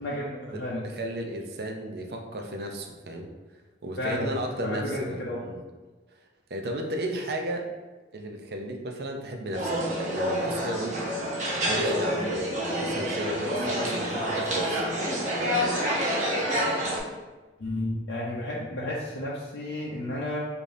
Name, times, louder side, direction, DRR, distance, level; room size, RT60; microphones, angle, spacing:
voice 1, 0.0-0.8 4.0-4.3 4.6-5.4 17.6-20.5, left 1 dB, 75° left, -6 dB, 0.6 m, -32 dB
voice 2, 0.5-3.3 3.8-5.6 6.5-7.7 8.1-11.3 11.7-14.9, right 1 dB, 60° right, 3 dB, 0.5 m, -34 dB
sound 1, 9.5-17.0, equal, 40° right, 0.9 m, -28 dB
4.9 x 2.6 x 2.6 m, 1.2 s
head